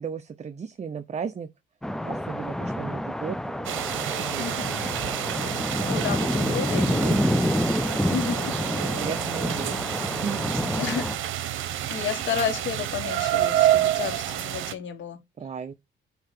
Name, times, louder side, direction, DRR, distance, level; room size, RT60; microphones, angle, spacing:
voice 1, 0.0-1.5 2.0-3.8 4.1-4.6 4.8-5.0 5.9-7.2 8.9-10.7 15.4-15.7, right 6 dB, 35° right, 0.7 m, -35 dB
sound 1, 1.8-11.1, left 1 dB, 5° left, 0.4 m, -28 dB
sound 2, 3.6-14.7, right 12 dB, 80° right, 0.8 m, -28 dB
voice 2, 4.4-4.8 5.9-7.2 8.1-8.5 10.8-11.1 11.9-15.2, left 7 dB, 75° left, 1.6 m, -31 dB
8.0 x 2.9 x 4.9 m
cardioid pair, 90°, 20 cm